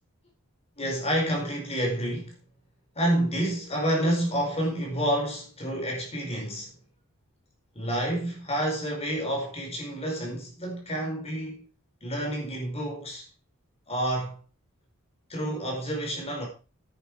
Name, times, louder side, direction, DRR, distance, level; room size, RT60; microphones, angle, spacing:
voice 1, 0.8-2.3 2.9-6.7 7.7-11.6 12.0-13.3 13.9-14.4 15.3-16.5, right 1 dB, 30° left, 4.8 m, -29 dB
10.5 x 10.0 x 4.8 m
head